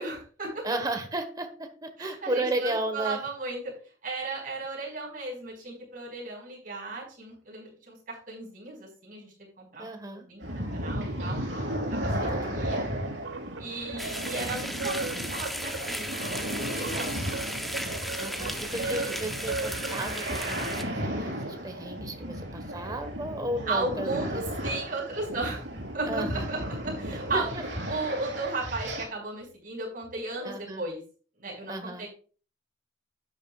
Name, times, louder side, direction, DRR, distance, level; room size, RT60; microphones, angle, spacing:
voice 1, 0.0-0.6 2.0-3.7 4.0-12.1 12.5-12.9 13.6-17.6 18.7-19.2 23.7-25.7 25.9-27.5 27.9-31.0 31.4-32.1, right 2 dB, 50° right, -2 dB, 5.5 m, -35 dB
voice 2, 0.6-3.2 9.8-10.3 12.1-12.6 18.2-24.4 26.1-26.5 27.3-27.6 30.4-30.8 31.7-32.1, right 1 dB, 20° right, 6 dB, 1.4 m, -34 dB
sound 1, 10.4-29.1, equal, 70° right, 4.5 m, -35 dB
sound 2, 12.2-20.4, right 3 dB, 85° right, 1.2 m, -38 dB
sound 3, 14.0-20.8, equal, ahead, 0.9 m, -36 dB
12.0 x 9.4 x 2.4 m, 0.40 s
head